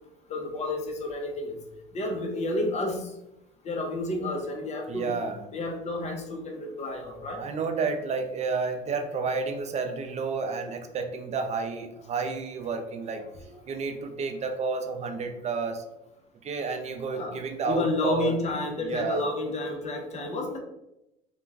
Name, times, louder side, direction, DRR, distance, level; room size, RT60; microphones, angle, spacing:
voice 1, 0.3-1.6 1.9-3.0 3.6-5.1 5.5-7.4 17.1-17.3 17.7-20.6, left 2 dB, 35° left, 3 dB, 0.7 m, -30 dB
voice 2, 4.9-5.4 7.4-13.2 13.7-15.8 16.4-18.3 18.8-19.3, right 4 dB, 35° right, 6 dB, 0.4 m, -30 dB
2.4 x 2.2 x 3.3 m, 0.88 s
supercardioid pair, 95°, 19 cm